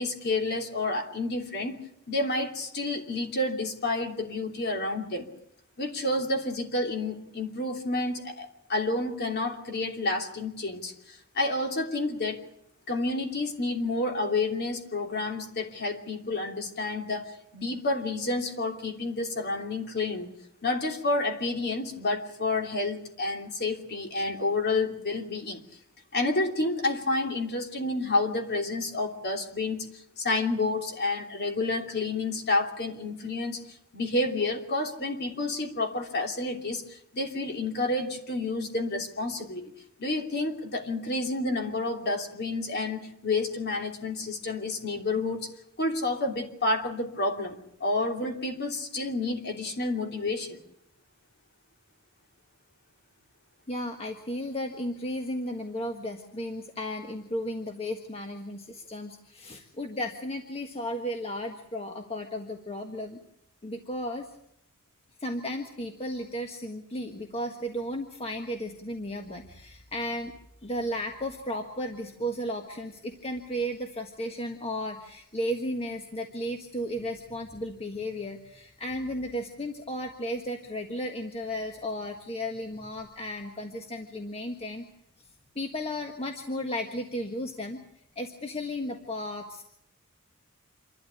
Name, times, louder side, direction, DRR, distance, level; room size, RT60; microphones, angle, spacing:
voice 1, 0.0-1.8 2.1-5.3 5.8-12.4 12.9-20.3 20.6-25.6 26.1-29.9 30.2-33.6 33.9-39.7 40.0-45.5 45.8-50.6, left 2 dB, 50° left, 4 dB, 3.0 m, -29 dB
voice 2, 53.7-63.2 63.6-64.3 65.2-70.3 70.6-84.8 85.5-87.8 88.1-89.6, equal, 25° left, 4 dB, 1.6 m, -34 dB
27.0 x 12.5 x 10.0 m, 0.75 s
head